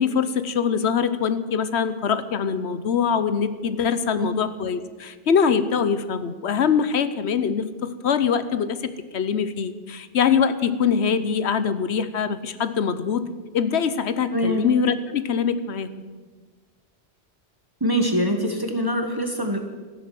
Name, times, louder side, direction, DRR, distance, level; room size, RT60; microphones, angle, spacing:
voice 1, 0.0-8.8 9.1-13.3 13.5-15.9, left 6 dB, 80° left, 12 dB, 1.1 m, -23 dB
voice 2, 14.3-14.7 17.8-19.6, equal, 20° right, 4 dB, 1.3 m, -24 dB
15.0 x 11.0 x 7.7 m, 1.4 s
omnidirectional pair, 1.1 m